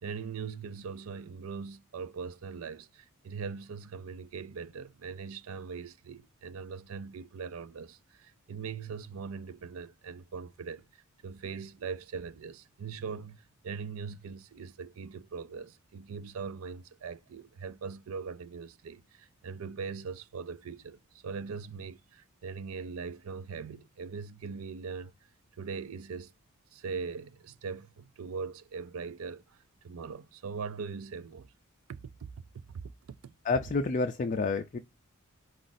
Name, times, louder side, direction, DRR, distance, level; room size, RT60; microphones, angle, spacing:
voice 1, 0.0-25.1 25.6-26.3 26.7-29.6 29.8-31.5 31.9-32.9 33.2-33.3, right 5 dB, 70° right, 0.4 m, -41 dB
voice 2, 33.5-34.8, left 3 dB, 35° left, 0.4 m, -29 dB
5.0 x 2.4 x 3.9 m
head